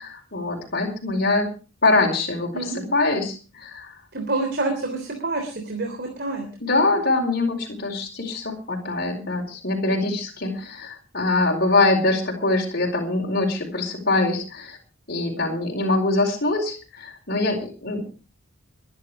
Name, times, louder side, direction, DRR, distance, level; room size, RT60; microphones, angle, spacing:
voice 1, 0.0-1.5 1.8-3.9 6.6-14.8 15.1-18.1, left 2 dB, 45° left, -1 dB, 4.6 m, -23 dB
voice 2, 2.5-2.9 4.1-6.5, right 2 dB, 50° right, 4 dB, 3.4 m, -27 dB
22.5 x 11.0 x 4.9 m, 0.36 s
head